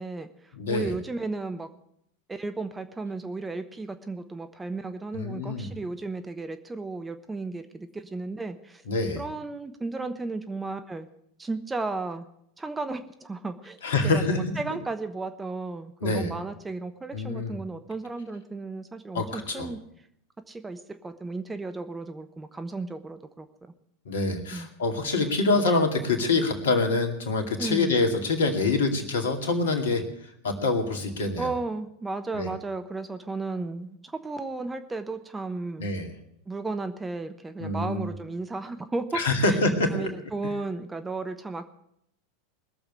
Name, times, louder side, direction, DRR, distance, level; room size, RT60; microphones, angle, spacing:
voice 1, 0.0-1.7 2.3-8.8 9.2-11.1 11.4-12.3 12.6-19.8 20.5-23.5 24.5-24.7 27.6-27.9 31.4-35.9 36.5-39.6 39.9-41.7, right 3 dB, 15° right, 8 dB, 1.1 m, -34 dB
voice 2, 0.5-0.9 5.1-5.7 8.9-9.3 13.8-14.8 16.0-16.3 17.1-17.5 19.1-19.7 24.1-30.0 30.4-31.5 32.3-32.5 35.8-36.1 37.6-38.1 39.1-40.1, left 3 dB, 70° left, 5 dB, 2.4 m, -26 dB
20.5 x 7.1 x 8.2 m, 0.74 s
figure-of-eight pair, 85°, 0 cm